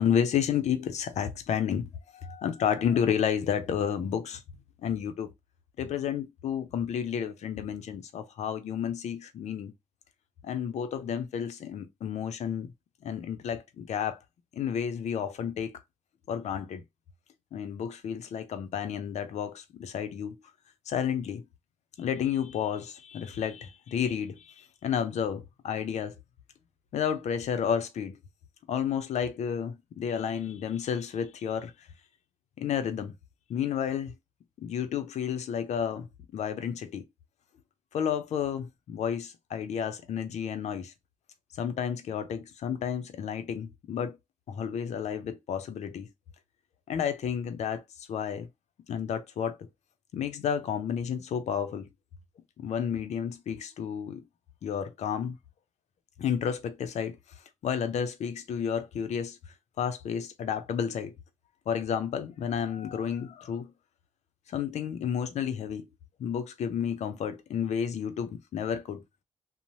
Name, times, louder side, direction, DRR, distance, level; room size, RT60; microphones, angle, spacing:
voice 1, 0.0-4.4 4.8-5.3 5.8-9.7 10.4-12.7 13.0-14.2 14.5-15.8 16.3-16.8 17.5-20.4 20.9-21.4 22.0-26.1 26.9-28.2 28.7-31.7 32.6-33.1 33.5-34.1 34.6-36.1 36.3-37.0 37.9-40.9 41.6-44.2 44.5-46.1 46.9-47.8 48.1-48.5 48.9-49.7 50.1-51.9 52.6-54.2 54.6-55.4 56.2-57.2 57.6-59.4 59.8-61.1 61.7-63.7 64.5-65.9 66.2-69.0, left 8 dB, 85° left, 0.5 m, -31 dB
2.7 x 2.0 x 2.9 m
cardioid pair, 70°, 11 cm